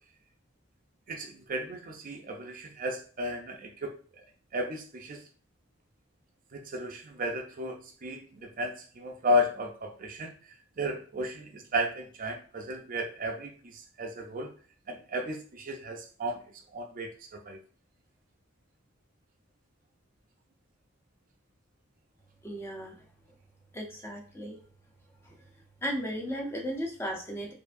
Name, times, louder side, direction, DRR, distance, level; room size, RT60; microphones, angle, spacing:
voice 1, 1.1-3.9 4.5-5.2 6.5-10.3 10.8-14.5 14.9-16.4 16.7-17.1 17.5-17.6, equal, 45° right, 3 dB, 0.5 m, -33 dB
voice 2, 22.4-23.0 23.7-24.6 25.2-25.4 25.8-27.5, equal, 10° left, 0 dB, 0.7 m, -35 dB
4.6 x 2.7 x 2.6 m, 0.42 s
head